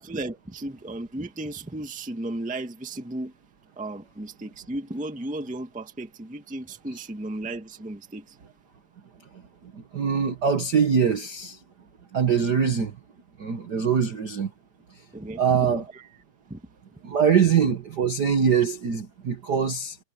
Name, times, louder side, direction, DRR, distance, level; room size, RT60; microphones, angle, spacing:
voice 1, 0.0-3.3 3.8-8.4 15.1-16.1 16.5-16.6, right 2 dB, 10° right, 0.5 m, -35 dB
voice 2, 9.7-11.6 12.1-13.0 13.4-14.5 15.4-15.8 17.0-20.0, right 7 dB, 85° right, 0.9 m, -23 dB
omnidirectional pair, 3.8 m